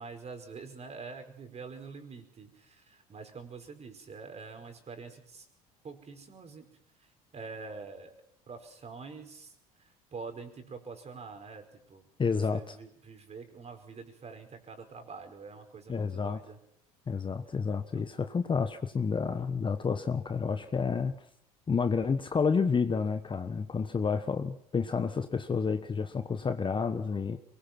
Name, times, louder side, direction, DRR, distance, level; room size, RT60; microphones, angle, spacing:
voice 1, 0.0-5.5 5.8-6.7 7.0-8.1 8.5-12.0 12.5-16.6 17.9-18.1, right 4 dB, 35° right, 6 dB, 5.1 m, -46 dB
voice 2, 12.2-12.7 15.9-16.4 17.1-21.1 21.7-27.4, left 5 dB, 25° left, 9 dB, 1.3 m, -30 dB
23.5 x 20.5 x 6.1 m, 0.69 s
hypercardioid pair, 75°, 19 cm